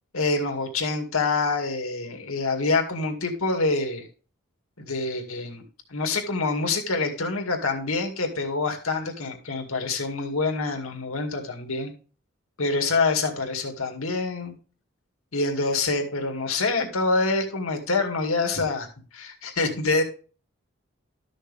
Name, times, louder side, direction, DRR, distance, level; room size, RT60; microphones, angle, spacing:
voice 1, 0.1-4.1 4.8-5.6 5.9-11.9 12.6-14.5 15.3-18.9 19.1-20.0, left 3 dB, 90° left, 4 dB, 2.2 m, -26 dB
13.0 x 6.5 x 3.4 m, 0.37 s
head